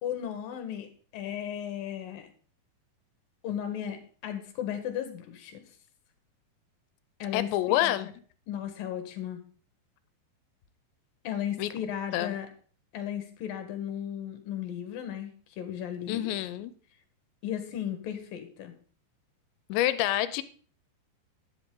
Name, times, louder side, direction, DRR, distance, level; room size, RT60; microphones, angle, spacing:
voice 1, 0.0-2.3 3.4-5.6 7.2-8.0 8.5-9.4 11.2-12.5 12.9-16.3 17.4-18.7, left 9 dB, 65° left, 7 dB, 2.7 m, -35 dB
voice 2, 7.3-8.1 11.6-11.7 12.1-12.3 16.1-16.7 19.7-20.4, left 13 dB, 85° left, 14 dB, 2.9 m, -27 dB
12.0 x 11.0 x 3.8 m, 0.43 s
omnidirectional pair, 5.1 m